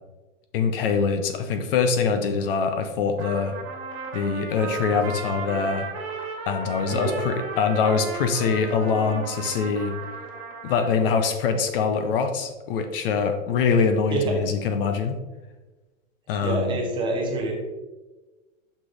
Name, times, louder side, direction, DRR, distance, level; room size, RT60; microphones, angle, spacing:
voice 1, 0.5-3.6 4.1-5.9 6.5-9.9 10.6-15.2 16.3-16.8, left 5 dB, 45° left, 7 dB, 0.6 m, -24 dB
Trumpet, 3.2-11.1, right 4 dB, 45° right, 1.5 m, -35 dB
voice 2, 16.4-17.5, right 3 dB, 10° right, -1 dB, 0.8 m, -26 dB
6.2 x 5.8 x 3.3 m, 1.2 s
supercardioid pair, 155°, 39 cm